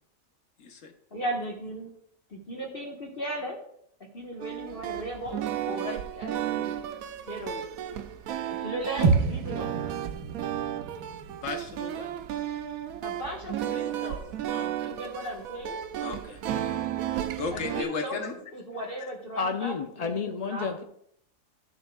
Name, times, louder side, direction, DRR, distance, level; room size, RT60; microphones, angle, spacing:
voice 1, 0.6-0.9 11.3-12.1 14.5-14.9 16.0-16.4 17.1-18.4 19.0-19.1, left 4 dB, 65° left, 5 dB, 1.4 m, -36 dB
voice 2, 1.1-1.9 2.3-3.6 4.1-6.8 7.3-7.7 8.5-9.7 13.0-14.2 14.6-15.8 17.5-20.7, right 1 dB, 40° left, -2 dB, 1.5 m, -37 dB
sound 1, 4.4-17.8, right 11 dB, 80° right, 1.0 m, -33 dB
sound 2, 9.0-13.4, right 4 dB, 55° right, 1.5 m, -30 dB
voice 3, 19.4-20.8, left 5 dB, 80° left, 6 dB, 0.3 m, -30 dB
13.5 x 6.8 x 2.3 m, 0.68 s
omnidirectional pair, 1.5 m